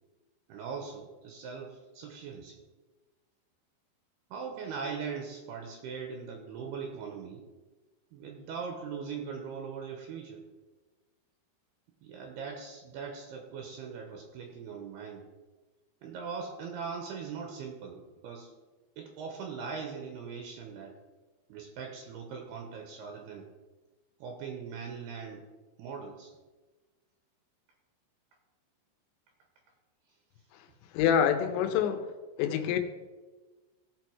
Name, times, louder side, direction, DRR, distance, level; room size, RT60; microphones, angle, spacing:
voice 1, 0.5-2.6 4.3-7.4 8.1-10.4 12.0-15.2 16.0-18.5 19.0-20.9 21.5-23.5 24.2-25.4 25.8-26.3, right 5 dB, 75° right, 3 dB, 2.8 m, -40 dB
voice 2, 30.5-32.1 32.4-32.8, left 8 dB, 85° left, 8 dB, 3.1 m, -27 dB
16.5 x 6.4 x 4.6 m, 1.3 s
omnidirectional pair, 5.1 m